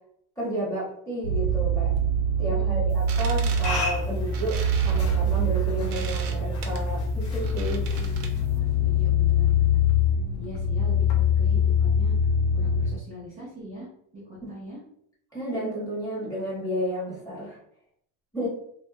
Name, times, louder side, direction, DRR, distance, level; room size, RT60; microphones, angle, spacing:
voice 1, 0.4-1.9 2.4-7.9 14.4-14.5 15.3-17.6 18.3-18.5, equal, 5° left, -8 dB, 1.0 m, -32 dB
sound 1, 1.2-12.9, left 2 dB, 60° left, 0.6 m, -24 dB
voice 2, 2.4-3.0 7.8-8.4 8.8-9.8 10.4-12.1 12.5-14.8 18.4-18.5, equal, 15° right, -8 dB, 0.3 m, -42 dB
sound 2, 2.9-8.6, right 6 dB, 70° right, 0.6 m, -41 dB
sound 3, 3.2-8.9, left 2 dB, 35° left, 1.0 m, -38 dB
2.2 x 2.1 x 2.6 m, 0.70 s
supercardioid pair, 150°, 44 cm